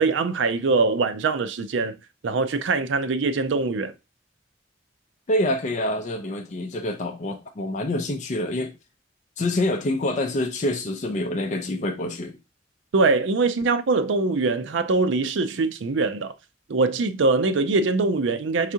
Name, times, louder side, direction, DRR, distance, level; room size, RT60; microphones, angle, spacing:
voice 1, 0.0-2.0 2.2-3.9 12.9-16.3 16.7-18.7, right 3 dB, 70° right, 0.5 m, -23 dB
voice 2, 5.3-8.7 9.4-12.4, left 1 dB, 40° left, 0.5 m, -26 dB
4.8 x 3.5 x 2.7 m
head